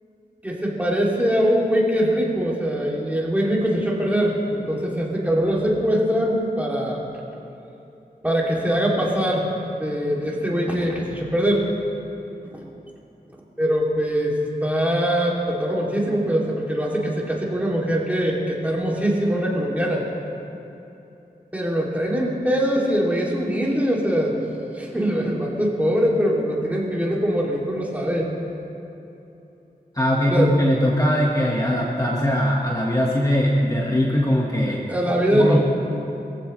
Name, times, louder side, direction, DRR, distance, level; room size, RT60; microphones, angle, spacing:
voice 1, 0.4-7.0 8.2-9.5 9.8-11.7 13.6-20.0 21.5-24.4 24.7-28.3 30.3-30.5 34.6-35.6, equal, 10° right, -4 dB, 2.9 m, -22 dB
voice 2, 29.9-34.8 35.3-35.6, equal, 20° left, -3 dB, 1.6 m, -20 dB
23.0 x 15.0 x 3.3 m, 3.0 s
wide cardioid pair, 95°, 16 cm